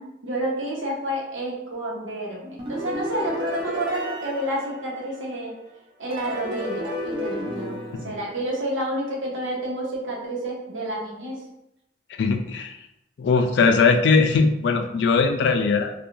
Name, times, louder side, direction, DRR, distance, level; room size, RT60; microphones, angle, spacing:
voice 1, 0.0-5.5 6.0-7.8 8.0-11.4, right 1 dB, 85° right, -3 dB, 0.9 m, -29 dB
sound 1, 2.6-5.4 6.1-8.9, left 1 dB, 25° right, 0.4 m, -32 dB
voice 2, 12.2-12.8 13.2-15.9, left 4 dB, 60° left, 6 dB, 0.3 m, -20 dB
2.5 x 2.3 x 2.9 m, 0.83 s
head